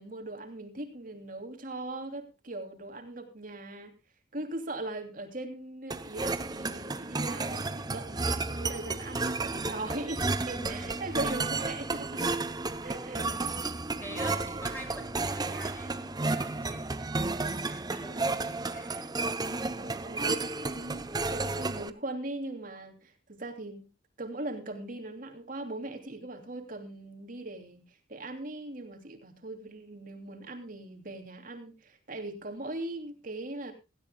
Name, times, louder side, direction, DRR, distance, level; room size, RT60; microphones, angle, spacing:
voice 1, 0.0-4.0 4.3-12.4 12.8-13.3 19.7-23.9 24.2-27.8 28.1-33.7, right 2 dB, 45° right, 5 dB, 3.0 m, -39 dB
sound 1, 5.9-21.9, right 3 dB, 20° right, 0.8 m, -32 dB
voice 2, 10.5-11.0 14.0-19.2, right 1 dB, 10° left, 2 dB, 6.2 m, -45 dB
17.5 x 16.0 x 2.3 m, 0.27 s
head